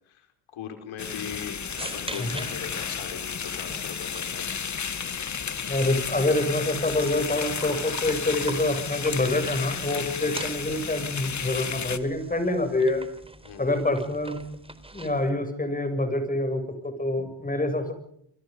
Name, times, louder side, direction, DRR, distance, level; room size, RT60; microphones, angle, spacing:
voice 1, 0.5-4.5 10.0-10.2 13.4-13.8, left 8 dB, 70° left, 6 dB, 4.9 m, -40 dB
sound 1, 1.0-12.0, left 7 dB, 35° left, 2.0 m, -33 dB
sound 2, 1.3-15.3, right 2 dB, 10° right, 4.1 m, -44 dB
voice 2, 5.7-13.0 13.6-14.4 14.9-17.9, left 2 dB, 15° left, 9 dB, 7.2 m, -26 dB
29.0 x 24.0 x 5.4 m, 0.70 s
cardioid pair, 90°, 49 cm